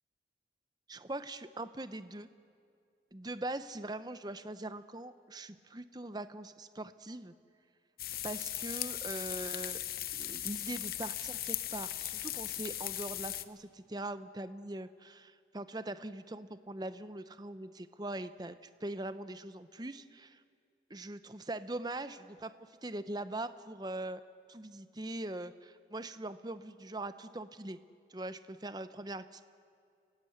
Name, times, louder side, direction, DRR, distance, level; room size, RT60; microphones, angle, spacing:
voice 1, 0.9-2.3 3.1-7.3 8.2-9.8 10.1-20.4 20.9-22.5 22.8-24.2 24.5-27.8 28.1-29.4, right 2 dB, 20° right, 11 dB, 0.8 m, -42 dB
sound 1, 8.0-13.4, left 13 dB, 55° left, 0.8 m, -38 dB
30.0 x 17.0 x 8.0 m, 2.3 s
head